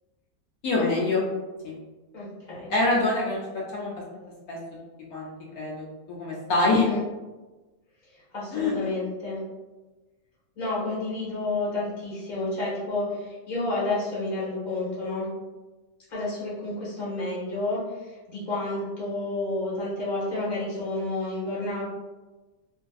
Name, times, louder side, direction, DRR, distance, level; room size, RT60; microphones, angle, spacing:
voice 1, 0.6-1.2 1.6-1.7 2.7-4.0 4.5-4.6 5.1-6.9 8.5-8.9, left 2 dB, 75° left, -4 dB, 1.0 m, -25 dB
voice 2, 2.1-2.7 6.7-7.0 8.1-9.4 10.6-15.3 16.1-21.8, left 2 dB, 35° left, -8 dB, 1.0 m, -30 dB
2.6 x 2.5 x 2.3 m, 1.2 s
omnidirectional pair, 1.6 m